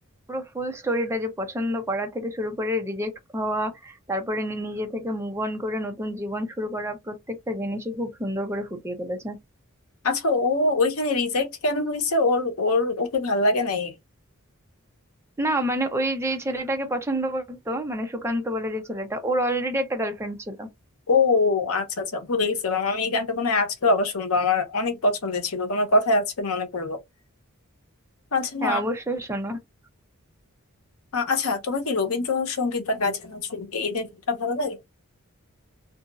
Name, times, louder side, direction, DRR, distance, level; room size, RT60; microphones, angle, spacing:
voice 1, 0.3-9.4 15.4-20.7 28.6-29.6, equal, 10° right, 0.6 m, -28 dB
voice 2, 10.0-13.9 21.1-27.0 28.3-28.8 31.1-34.8, left 3 dB, 75° left, 0.8 m, -24 dB
2.8 x 2.7 x 2.3 m
head